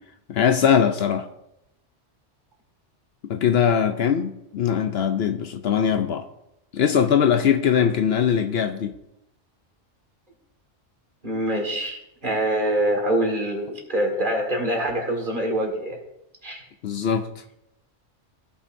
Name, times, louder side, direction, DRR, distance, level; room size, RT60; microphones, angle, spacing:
voice 1, 0.3-1.2 3.3-6.3 6.7-8.9 16.8-17.3, left 8 dB, 65° left, 8 dB, 0.8 m, -21 dB
voice 2, 11.2-16.0 16.4-16.6, right 1 dB, 45° right, 1 dB, 1.9 m, -25 dB
16.5 x 5.9 x 2.6 m, 0.85 s
omnidirectional pair, 1.2 m